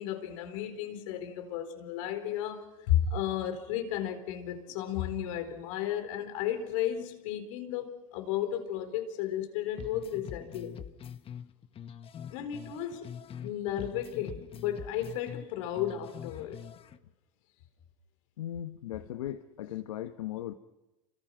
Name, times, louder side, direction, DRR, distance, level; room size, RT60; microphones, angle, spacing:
voice 1, 0.0-10.8 12.3-13.1 13.4-16.6, left 10 dB, 70° left, 4.2 m, -33 dB
sound 1, 9.8-13.5 13.8-17.0, left 8 dB, 35° left, 1.3 m, -44 dB
voice 2, 18.4-20.5, left 12 dB, 90° left, 1.1 m, -38 dB
30.0 x 25.5 x 6.0 m
supercardioid pair, 105°, 17 cm